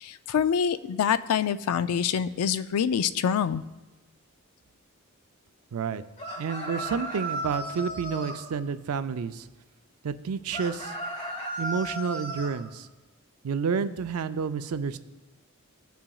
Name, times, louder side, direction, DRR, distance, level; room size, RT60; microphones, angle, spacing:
voice 1, 0.0-3.6, left 7 dB, 90° left, 13 dB, 0.3 m, -26 dB
voice 2, 5.7-6.0 6.4-9.5 10.0-10.9 11.6-12.9 13.4-15.0, right 6 dB, 85° right, 12 dB, 0.4 m, -30 dB
sound 1, 6.2-8.4 10.5-12.5, right 1 dB, 30° left, 1.3 m, -35 dB
16.0 x 5.8 x 2.3 m, 1.1 s
head